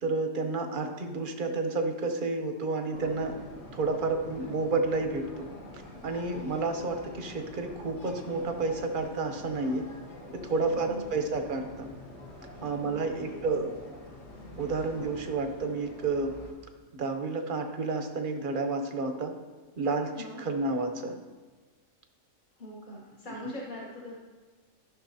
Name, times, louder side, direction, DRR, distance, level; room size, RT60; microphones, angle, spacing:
voice 1, 0.0-3.4 3.7-5.5 6.0-9.8 10.3-11.9 12.6-13.7 14.6-16.3 16.9-19.3 19.8-20.1 20.4-21.2, right 3 dB, 45° right, 6 dB, 0.8 m, -30 dB
sound 1, 2.9-16.5, left 1 dB, 55° left, 1.5 m, -46 dB
voice 2, 10.7-11.1 12.8-13.4 14.9-15.2 20.1-20.4 22.6-24.2, equal, 40° left, -4 dB, 1.1 m, -42 dB
13.5 x 6.0 x 2.7 m, 1.4 s
omnidirectional pair, 1.4 m